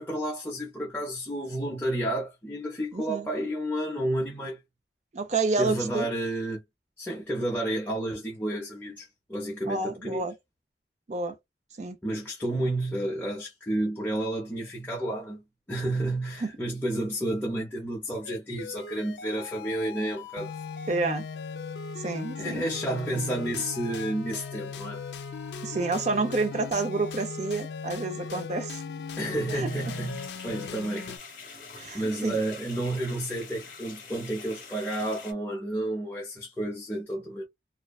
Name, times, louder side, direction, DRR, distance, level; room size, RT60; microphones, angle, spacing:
voice 1, 0.0-4.6 5.6-6.6 7.0-10.2 12.0-15.4 15.7-20.5 22.4-25.0 29.2-31.1 31.9-37.5, right 1 dB, 10° left, 0.6 m, -31 dB
voice 2, 2.9-3.3 5.1-6.1 9.7-10.3 11.1-11.4 11.8-12.0 16.4-16.5 20.9-21.2 22.0-22.7 25.6-28.8 29.5-29.7 31.8-32.4, right 3 dB, 40° right, 0.5 m, -29 dB
sound 1, 18.2-31.2, left 5 dB, 75° left, 0.4 m, -38 dB
sound 2, 29.6-35.3, left 4 dB, 50° left, 0.9 m, -45 dB
2.4 x 2.2 x 2.3 m
head